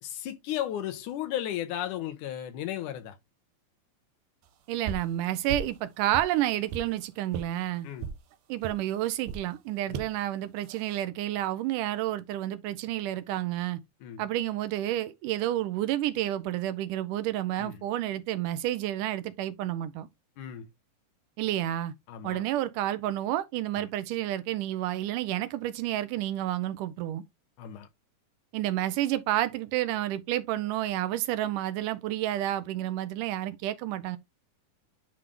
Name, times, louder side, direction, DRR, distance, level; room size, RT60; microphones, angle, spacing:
voice 1, 0.0-3.1 7.8-8.1 9.9-10.0 14.0-14.2 17.6-17.8 20.4-20.7 22.1-22.4 27.6-27.9, left 11 dB, 80° left, 2.4 m, -34 dB
voice 2, 4.7-7.9 8.5-13.8 14.2-20.1 21.4-21.9 22.2-27.2 28.5-34.2, right 13 dB, 90° right, 2.3 m, -30 dB
sound 1, 4.9-5.1 5.5-5.8 6.1-6.9 7.3-7.5 8.0-8.2 8.6-8.8 9.3-9.5 9.9-10.1 10.7-11.0, right 6 dB, 75° right, 1.9 m, -36 dB
9.2 x 3.8 x 3.3 m
omnidirectional pair, 3.6 m